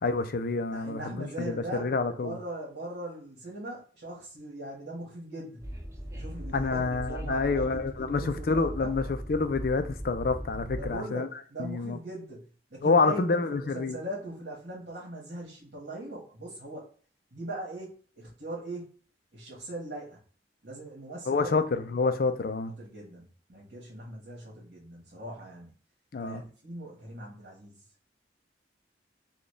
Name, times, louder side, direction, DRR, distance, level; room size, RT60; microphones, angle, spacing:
voice 1, 0.0-2.4 6.5-11.3 11.6-12.0 12.8-14.0 21.3-22.7 26.1-26.4, left 4 dB, 55° left, 0.4 m, -28 dB
voice 2, 0.7-1.9 2.2-5.6 6.1-8.9 10.7-12.4 12.7-16.9 17.3-18.9 19.3-20.2 20.6-21.5 22.8-25.7 26.2-27.7, right 1 dB, 60° right, 1.5 m, -40 dB
Train, 5.6-10.9, equal, 15° right, 0.5 m, -39 dB
4.1 x 2.3 x 3.2 m
head